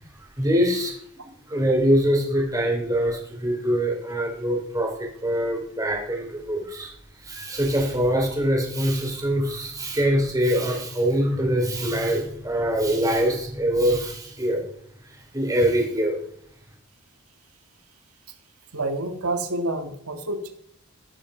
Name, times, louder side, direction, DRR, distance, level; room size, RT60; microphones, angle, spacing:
voice 1, 0.4-1.0 1.5-6.9 7.2-14.6 15.3-16.2, equal, 15° right, 1 dB, 3.2 m, -23 dB
voice 2, 18.7-20.5, right 2 dB, 85° right, 5 dB, 1.8 m, -28 dB
16.0 x 11.5 x 5.0 m, 0.68 s
head